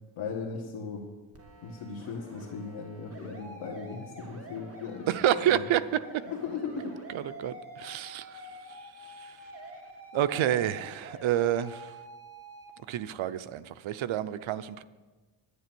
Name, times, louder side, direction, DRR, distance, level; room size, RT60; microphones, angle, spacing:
voice 1, 0.2-1.1 1.6-5.1 5.5-5.6 6.3-6.9, left 5 dB, 75° left, -1 dB, 1.6 m, -37 dB
sound 1, 1.3-12.7, right 1 dB, 30° right, 2.2 m, -47 dB
voice 2, 5.1-6.2 7.1-9.4 10.1-12.0 12.9-14.8, right 11 dB, 70° right, 13 dB, 0.7 m, -29 dB
11.0 x 10.0 x 6.1 m, 1.3 s
cardioid pair, 115°, 48 cm